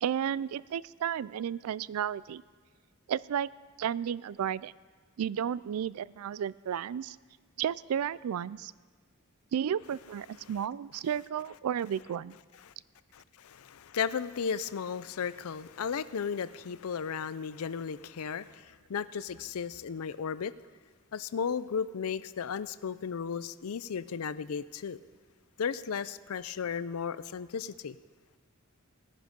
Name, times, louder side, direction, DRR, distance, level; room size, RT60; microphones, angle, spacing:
voice 1, 0.0-2.4 3.1-3.5 3.8-4.7 5.2-7.2 7.6-8.7 9.5-12.4, right 9 dB, 80° right, 20 dB, 0.3 m, -33 dB
voice 2, 13.1-20.5 21.1-25.0 25.6-28.0, left 6 dB, 80° left, 16 dB, 0.5 m, -35 dB
17.5 x 10.0 x 5.2 m, 1.5 s
head